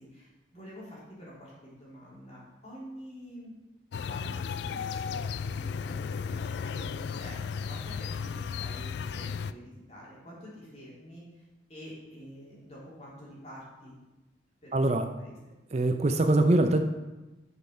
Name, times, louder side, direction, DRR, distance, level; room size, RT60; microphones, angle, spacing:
voice 1, 0.0-3.5 4.1-14.0 14.6-15.4, equal, 35° left, -7 dB, 3.6 m, -48 dB
sound 1, 3.9-9.5, left 6 dB, 60° left, 0.3 m, -34 dB
voice 2, 14.7-15.0 15.7-16.8, right 2 dB, 35° right, 7 dB, 0.5 m, -23 dB
8.3 x 6.4 x 5.6 m, 1.1 s
head